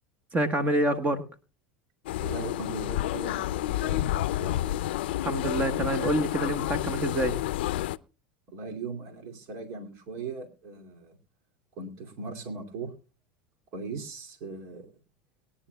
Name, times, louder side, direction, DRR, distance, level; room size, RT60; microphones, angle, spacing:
voice 1, 0.3-1.2 5.2-7.3, right 1 dB, 25° right, 12 dB, 1.3 m, -27 dB
sound 1, 2.1-8.0, left 14 dB, 80° left, 0.5 m, -30 dB
voice 2, 2.2-4.8 8.5-11.2 11.8-12.9 13.7-14.9, right 4 dB, 60° right, 4 dB, 2.6 m, -39 dB
23.0 x 10.0 x 2.3 m, 0.32 s
supercardioid pair, 105°, 5 cm